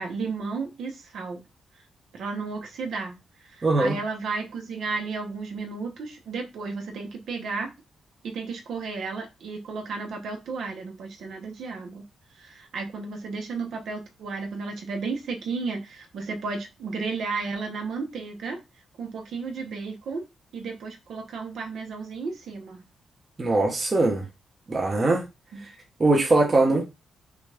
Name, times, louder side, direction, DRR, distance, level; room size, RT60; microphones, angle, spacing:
voice 1, 0.0-1.4 2.1-3.2 3.5-7.7 8.2-12.0 12.4-18.6 19.0-20.2 20.5-22.8 25.5-25.6 26.5-26.8, right 4 dB, 65° right, 1.1 m, -33 dB
voice 2, 3.6-4.0 23.4-24.2 24.7-25.2 26.0-26.8, right 2 dB, 25° right, 0.9 m, -21 dB
5.9 x 2.5 x 3.4 m
wide cardioid pair, 175°, 0 cm